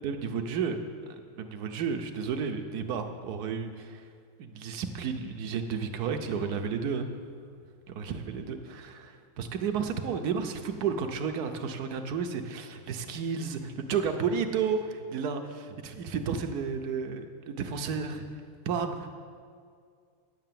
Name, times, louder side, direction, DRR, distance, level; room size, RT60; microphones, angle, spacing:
voice 1, 0.0-0.8 1.4-4.1 4.4-7.1 7.9-18.2 18.6-19.1, right 6 dB, 65° right, 6 dB, 1.0 m, -32 dB
10.0 x 7.8 x 7.5 m, 2.2 s
omnidirectional pair, 2.4 m